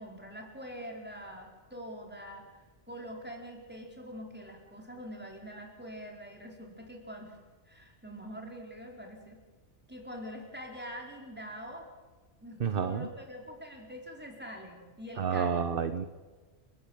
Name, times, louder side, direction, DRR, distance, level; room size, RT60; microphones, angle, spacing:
voice 1, 0.0-2.5 2.9-7.4 7.7-9.4 9.9-11.9 12.4-15.9, equal, 10° right, 1 dB, 4.9 m, -44 dB
voice 2, 12.6-13.1 15.2-16.1, right 7 dB, 50° right, 11 dB, 1.1 m, -30 dB
29.5 x 13.5 x 9.1 m, 1.4 s
omnidirectional pair, 1.2 m